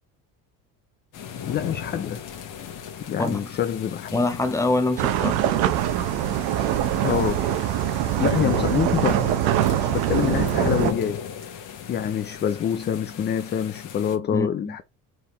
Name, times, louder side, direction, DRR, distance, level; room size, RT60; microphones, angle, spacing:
sound 1, 1.1-14.2, left 8 dB, 50° left, 1.3 m, -36 dB
voice 1, 1.5-2.3 3.0-4.1 7.0-7.5 8.2-9.1 9.8-11.6 11.9-14.8, left 9 dB, 25° left, 0.4 m, -26 dB
voice 2, 3.2-3.5 4.1-5.4 8.2-8.7 14.3-14.8, left 2 dB, 10° left, 0.9 m, -25 dB
sound 2, 5.0-10.9, right 11 dB, 75° right, 0.8 m, -23 dB
4.6 x 3.5 x 3.0 m
cardioid pair, 120°, 39 cm